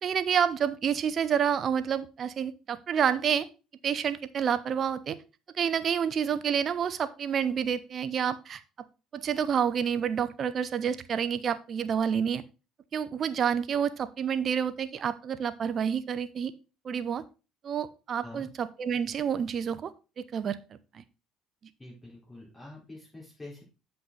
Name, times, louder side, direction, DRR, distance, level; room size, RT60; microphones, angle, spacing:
voice 1, 0.0-3.5 3.8-5.2 5.5-8.6 9.1-12.4 12.9-16.5 16.8-17.2 17.6-19.9 20.2-21.0, right 8 dB, 45° right, 14 dB, 0.7 m, -29 dB
voice 2, 21.8-23.6, left 2 dB, 15° left, -4 dB, 4.6 m, -46 dB
7.8 x 5.6 x 4.1 m, 0.32 s
supercardioid pair, 80°, 0 cm